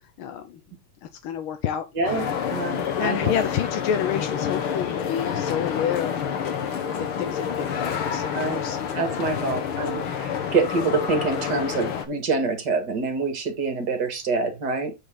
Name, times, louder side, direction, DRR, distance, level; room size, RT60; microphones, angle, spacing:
voice 1, 0.2-0.6 1.0-1.8 2.6-6.6 7.0-8.8, left 9 dB, 70° left, 1.2 m, -29 dB
sound 1, 2.0-12.0, left 7 dB, 55° left, 1.8 m, -28 dB
voice 2, 2.0-2.3 2.5-3.3 8.3-8.6 8.9-14.9, right 4 dB, 40° right, 2.3 m, -26 dB
8.4 x 5.6 x 4.0 m
omnidirectional pair, 3.3 m